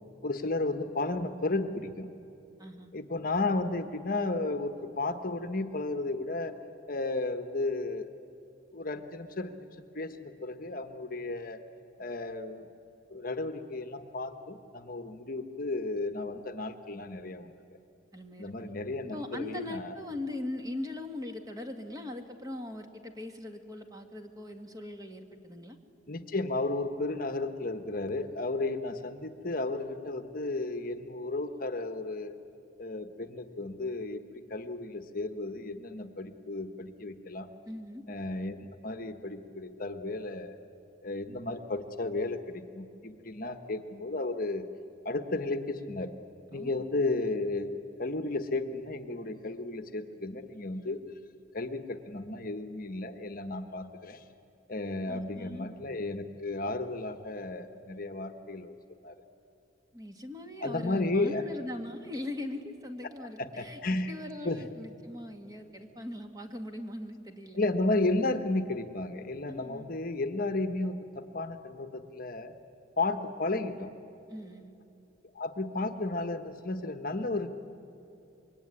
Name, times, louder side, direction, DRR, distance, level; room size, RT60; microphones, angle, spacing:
voice 1, 0.2-2.1 2.9-6.5 6.9-8.1 8.7-9.7 9.9-11.6 12.0-12.7 13.1-17.5 18.4-20.0 26.1-32.4 32.8-37.5 38.1-38.6 38.8-40.6 41.0-44.6 45.0-46.1 46.5-47.7 48.0-51.0 51.5-54.2 54.7-58.8 59.0-59.1 60.6-61.4 63.4-64.1 64.4-64.6 67.5-72.5 73.0-73.9 75.3-77.5, left 2 dB, 45° left, 8 dB, 1.2 m, -33 dB
voice 2, 2.6-2.9 18.1-18.6 19.0-25.8 37.7-38.0 46.5-46.9 55.1-55.7 59.9-63.8 64.1-67.6 69.5-69.8 74.3-74.7, left 1 dB, 20° right, 5 dB, 1.9 m, -40 dB
26.0 x 23.0 x 9.8 m, 2.8 s
head